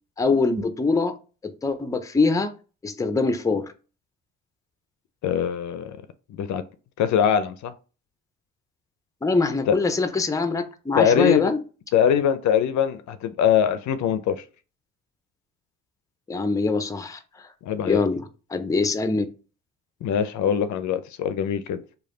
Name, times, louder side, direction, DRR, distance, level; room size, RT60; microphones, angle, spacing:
voice 1, 0.2-1.2 1.4-2.5 2.8-3.7 9.2-11.6 16.3-17.5 17.8-19.3, left 3 dB, 10° left, 0.5 m, -23 dB
voice 2, 5.2-6.0 6.3-6.6 7.0-7.7 9.7-9.8 11.0-11.5 11.9-14.4 17.6-18.0 20.0-21.8, left 8 dB, 65° left, 0.5 m, -22 dB
3.3 x 2.3 x 3.7 m
supercardioid pair, 70°, 32 cm